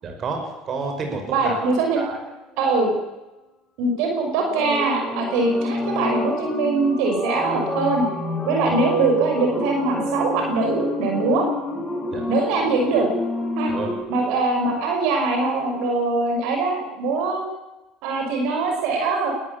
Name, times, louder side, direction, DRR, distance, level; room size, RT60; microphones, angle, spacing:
voice 1, 0.0-2.2 8.7-8.8 12.1-12.3 13.7-14.0, right 4 dB, 45° right, 3 dB, 5.8 m, -30 dB
voice 2, 1.3-2.0 2.6-2.9 3.8-8.1 8.4-11.4 12.3-13.1 13.6-13.7 14.1-17.4 18.0-19.3, right 3 dB, 70° right, 2 dB, 6.2 m, -22 dB
sound 1, 4.4-14.0, left 1 dB, ahead, 6.5 m, -28 dB
21.0 x 14.5 x 8.6 m, 1.0 s
hypercardioid pair, 75°, 0 cm